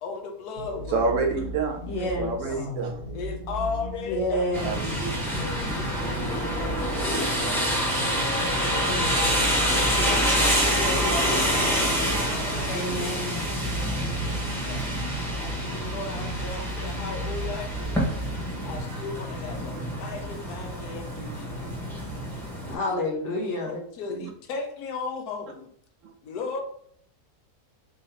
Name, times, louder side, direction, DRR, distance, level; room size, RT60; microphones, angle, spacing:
voice 1, 0.0-1.1 1.9-2.8 3.1-4.5 5.4-7.7 8.6-11.7 13.7-14.9 15.3-18.0 18.6-22.0 22.6-23.4 23.6-25.7 26.2-26.6, left 4 dB, 80° left, 4 dB, 1.3 m, -37 dB
sound 1, 0.6-18.7, equal, 30° right, 1.2 m, -37 dB
voice 2, 0.9-1.8 2.2-3.0 4.6-5.4 24.1-24.3 26.0-26.1, right 4 dB, 65° right, 4 dB, 0.9 m, -28 dB
voice 3, 1.9-2.3 4.1-4.8 12.7-13.4 22.7-23.8, left 1 dB, 55° left, 0 dB, 1.2 m, -29 dB
sound 2, 4.5-22.7, equal, ahead, 0.9 m, -27 dB
3.8 x 2.6 x 4.3 m, 0.63 s
omnidirectional pair, 1.6 m